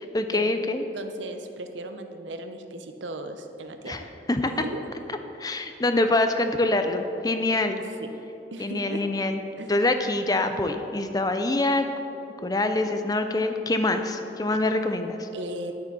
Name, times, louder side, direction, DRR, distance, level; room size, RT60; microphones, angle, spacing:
voice 1, 0.1-0.8 3.9-4.0 4.3-4.5 5.4-7.8 8.6-9.4 9.7-11.8 12.4-15.3, left 2 dB, 20° left, 7 dB, 0.5 m, -25 dB
voice 2, 0.9-4.1 4.5-4.8 8.0-8.1 8.5-9.0 9.6-9.7 14.5-14.6 15.3-15.7, right 2 dB, 80° right, 6 dB, 0.8 m, -37 dB
10.5 x 9.1 x 4.2 m, 2.9 s
head